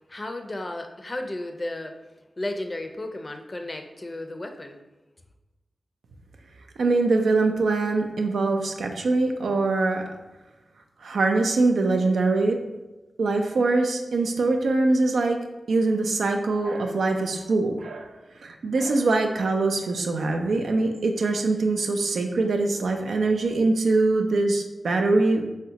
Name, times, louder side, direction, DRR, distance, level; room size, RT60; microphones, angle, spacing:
voice 1, 0.1-2.0 2.4-4.8, left 1 dB, 40° left, 5 dB, 0.4 m, -33 dB
voice 2, 6.8-10.0 11.0-12.6 13.2-15.4 15.7-18.2 18.4-25.5, right 3 dB, 85° right, 4 dB, 0.3 m, -23 dB
3.6 x 2.1 x 2.7 m, 1.1 s
cardioid pair, 40°, 0 cm